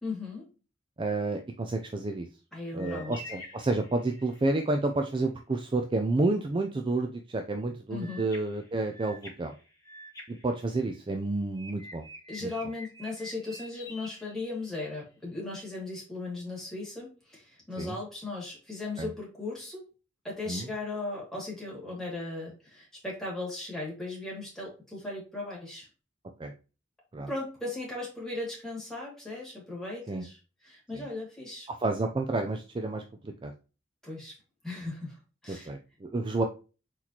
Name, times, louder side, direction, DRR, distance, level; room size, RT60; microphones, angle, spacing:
voice 1, 0.0-0.5 2.5-3.2 7.9-8.3 12.3-19.8 20.2-25.9 27.3-30.4 30.6-31.7 34.0-34.3 34.6-35.7, left 2 dB, ahead, -4 dB, 2.3 m, -37 dB
voice 2, 1.0-2.3 2.7-9.5 10.3-12.1 12.4-12.5 17.8-17.9 19.0-19.1 20.5-20.7 26.4-26.5 27.1-27.3 30.1-30.2 30.9-31.1 31.7-33.5 35.5-36.4, right 2 dB, 25° right, 5 dB, 0.4 m, -30 dB
sound 1, 2.8-4.5 8.0-11.2 11.6-15.0, left 1 dB, 20° left, 1.6 m, -48 dB
4.5 x 4.1 x 2.8 m, 0.33 s
head